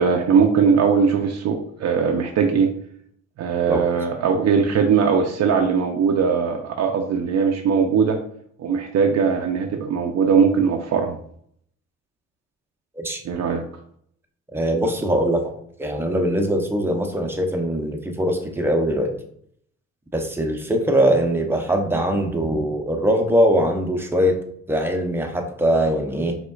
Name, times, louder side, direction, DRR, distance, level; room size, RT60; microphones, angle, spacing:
voice 1, 0.0-2.7 3.4-8.2 8.6-11.2 13.2-13.6, right 6 dB, 60° right, 3 dB, 0.6 m, -20 dB
voice 2, 14.5-15.5 15.8-19.1 20.1-24.4 24.7-26.4, equal, 10° right, 3 dB, 0.7 m, -21 dB
5.0 x 3.6 x 2.4 m, 0.65 s
cardioid pair, 90°, 30 cm